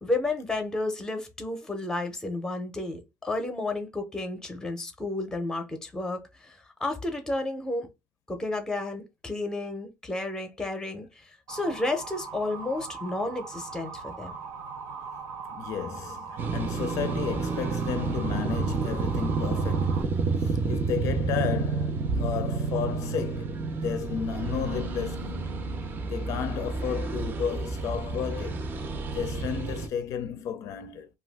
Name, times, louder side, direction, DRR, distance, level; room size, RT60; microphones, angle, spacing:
voice 1, 0.0-7.9 8.3-14.3, left 2 dB, 10° left, 0.6 m, -32 dB
Motor vehicle (road) / Siren, 11.5-20.0, right 5 dB, 80° right, 0.6 m, -40 dB
voice 2, 15.5-25.5 26.1-28.7 29.1-31.1, left 8 dB, 75° left, 0.5 m, -33 dB
sound 1, 16.4-29.9, right 4 dB, 35° right, 0.5 m, -30 dB
2.6 x 2.3 x 3.4 m
cardioid pair, 170°, 6 cm